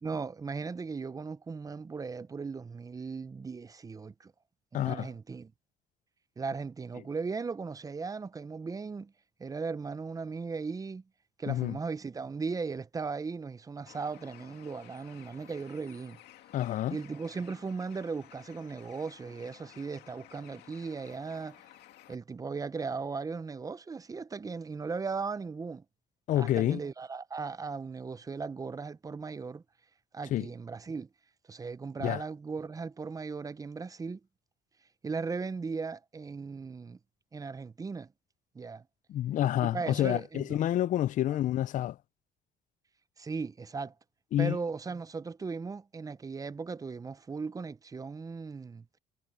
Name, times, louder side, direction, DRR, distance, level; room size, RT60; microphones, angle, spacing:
voice 1, 0.0-4.3 4.7-5.5 6.4-9.1 9.4-11.0 11.4-16.2 16.9-21.6 22.1-25.8 26.4-29.6 30.1-31.1 31.5-34.2 35.0-37.0 37.3-38.1 38.5-38.8 39.6-40.6 41.3-41.4 43.2-43.9 44.4-48.9, right 4 dB, 20° right, 0.6 m, -37 dB
voice 2, 4.7-5.1 11.5-11.8 16.5-17.0 26.3-26.8 30.3-30.5 32.0-32.2 39.1-42.0 44.3-44.6, left 12 dB, 50° left, 0.4 m, -28 dB
Bird, 13.9-22.1, left 14 dB, 75° left, 2.2 m, -55 dB
cardioid pair, 110°, 17 cm